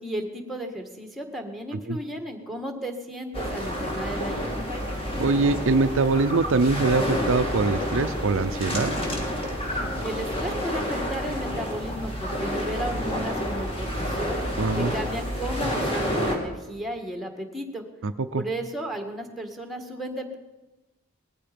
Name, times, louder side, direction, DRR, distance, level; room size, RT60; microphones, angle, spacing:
voice 1, 0.0-4.7 10.0-14.4 14.7-17.8 18.3-20.4, right 1 dB, ahead, 4 dB, 1.7 m, -34 dB
sound 1, 3.3-16.4, equal, 25° left, 2.8 m, -29 dB
voice 2, 5.2-8.9 14.6-14.9 18.0-18.4, right 3 dB, 60° right, 9 dB, 0.6 m, -23 dB
19.5 x 14.5 x 5.2 m, 1.1 s
head